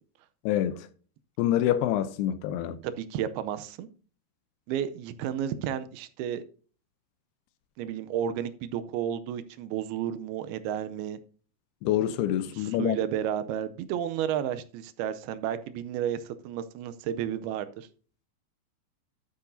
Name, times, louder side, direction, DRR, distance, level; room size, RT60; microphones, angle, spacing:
voice 1, 0.5-0.9 1.4-2.8 11.8-13.0, left 12 dB, 90° left, 2.7 m, -26 dB
voice 2, 2.8-3.9 4.7-6.4 7.8-11.2 12.5-17.9, right 9 dB, 85° right, 2.5 m, -32 dB
11.5 x 8.5 x 2.6 m
omnidirectional pair, 4.5 m